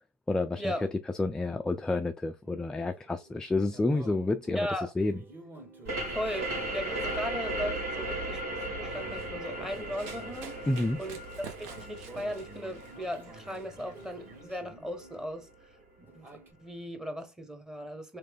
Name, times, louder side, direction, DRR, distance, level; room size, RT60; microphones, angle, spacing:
voice 1, 0.3-0.7 1.2-4.6 5.0-5.2 10.7-11.0, left 2 dB, 10° left, 0.4 m, -29 dB
sound 1, 2.4-15.5 15.8-16.5, right 2 dB, 25° right, 1.6 m, -52 dB
voice 2, 4.5-4.9 6.1-8.4 8.7-10.7 11.0-15.5 16.1-16.3 16.6-18.2, equal, 5° right, 1.1 m, -37 dB
sound 2, 5.8-15.2, right 1 dB, 90° right, 2.2 m, -37 dB
Run, 8.9-14.4, right 6 dB, 65° right, 1.0 m, -50 dB
3.5 x 3.2 x 3.6 m
supercardioid pair, 100°, 8 cm